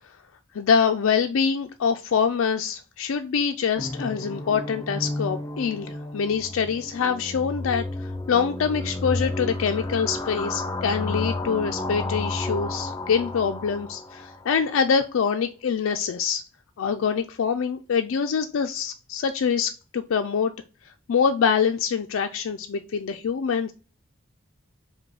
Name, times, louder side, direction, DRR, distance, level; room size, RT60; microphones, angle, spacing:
voice 1, 0.5-16.4 16.8-20.5 21.1-23.7, left 6 dB, 85° left, 6 dB, 0.4 m, -25 dB
sound 1, 3.8-14.6, left 2 dB, 15° left, 0.4 m, -32 dB
5.0 x 2.2 x 4.7 m, 0.35 s
head